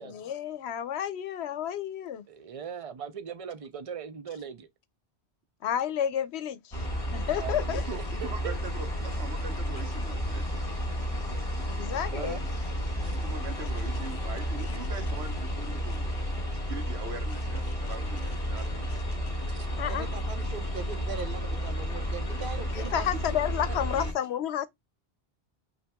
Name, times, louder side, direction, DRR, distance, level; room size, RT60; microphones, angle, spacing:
voice 1, 0.0-2.2 5.6-6.9 7.1-7.8 11.7-12.4 19.8-20.1 22.7-24.7, left 10 dB, 85° left, 0.9 m, -31 dB
voice 2, 2.3-4.7 7.4-8.5 12.1-12.4 13.0-13.2 19.5-19.7, right 7 dB, 40° right, 0.6 m, -40 dB
sound 1, 6.7-24.1, equal, 30° left, 2.6 m, -32 dB
voice 3, 7.7-10.7 13.1-16.1 16.5-19.0, right 4 dB, 80° right, 1.3 m, -42 dB
voice 4, 19.9-23.2 24.0-24.1, right 4 dB, 55° right, 1.2 m, -39 dB
5.6 x 2.8 x 2.2 m
omnidirectional pair, 1.1 m